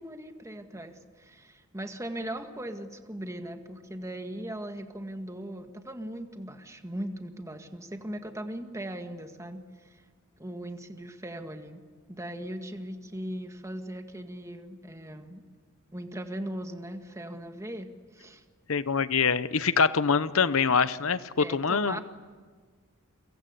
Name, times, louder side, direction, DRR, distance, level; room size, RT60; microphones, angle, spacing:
voice 1, 0.0-10.0 10.4-11.8 12.1-15.4 15.9-18.4 21.4-22.0, right 1 dB, 15° right, 6 dB, 1.8 m, -39 dB
voice 2, 18.7-22.0, left 5 dB, 70° left, 15 dB, 0.9 m, -24 dB
29.5 x 24.5 x 8.2 m, 1.5 s
head